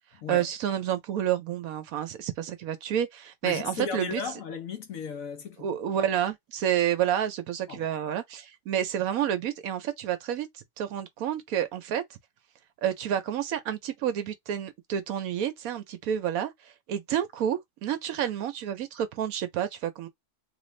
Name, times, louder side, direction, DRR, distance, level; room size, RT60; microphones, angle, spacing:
voice 1, 0.3-4.2 5.6-12.0 12.8-20.1, right 10 dB, 70° right, 1.0 m, -29 dB
voice 2, 3.4-5.7 7.7-7.9, left 6 dB, 65° left, 1.0 m, -35 dB
3.0 x 2.5 x 3.1 m
omnidirectional pair, 1.7 m